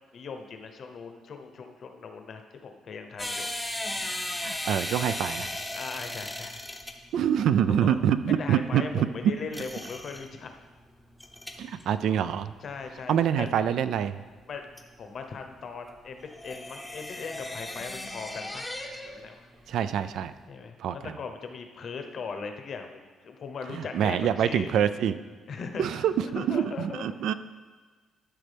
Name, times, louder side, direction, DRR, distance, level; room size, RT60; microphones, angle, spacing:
voice 1, 0.1-3.5 5.7-6.6 7.8-8.0 8.4-10.5 12.6-13.5 14.5-14.6 15.0-18.7 19.0-19.5 20.5-24.7 25.5-27.3, left 5 dB, 45° left, 6 dB, 0.8 m, -39 dB
sound 1, 3.2-19.3 19.5-20.4, left 1 dB, 5° left, 0.7 m, -37 dB
voice 2, 4.4-5.5 7.1-9.3 11.6-12.5 13.1-14.2 19.7-20.3 20.8-21.2 23.7-25.2 25.8-27.3, right 9 dB, 70° right, 13 dB, 0.3 m, -26 dB
13.0 x 6.2 x 3.4 m, 1.4 s
cardioid pair, 145°, 0 cm